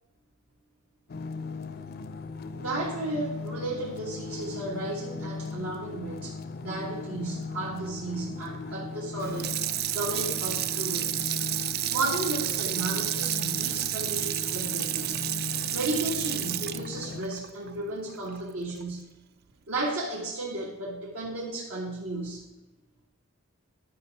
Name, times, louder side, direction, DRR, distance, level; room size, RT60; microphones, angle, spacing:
sound 1, 1.1-17.2, left 4 dB, 45° left, 0.4 m, -38 dB
voice 1, 2.5-9.6 9.9-11.4 11.9-15.2 15.7-19.1 19.7-22.4, right 2 dB, 85° right, -5 dB, 1.6 m, -34 dB
Water tap faucet / Sink (filling or washing), 9.2-18.4 18.8-18.9, right 13 dB, 45° right, 0.3 m, -31 dB
10.5 x 5.0 x 4.6 m, 1.1 s
head